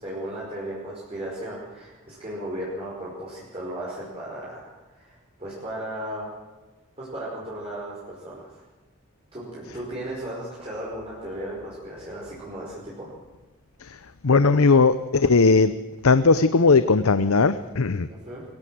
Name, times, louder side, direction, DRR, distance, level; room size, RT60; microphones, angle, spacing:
voice 1, 0.0-6.3 7.0-8.6 9.3-13.1 18.2-18.4, right 1 dB, 25° right, -6 dB, 5.3 m, -35 dB
voice 2, 13.8-15.7 16.0-18.1, left 4 dB, 80° left, 13 dB, 0.8 m, -18 dB
22.5 x 17.0 x 7.8 m, 1.2 s
head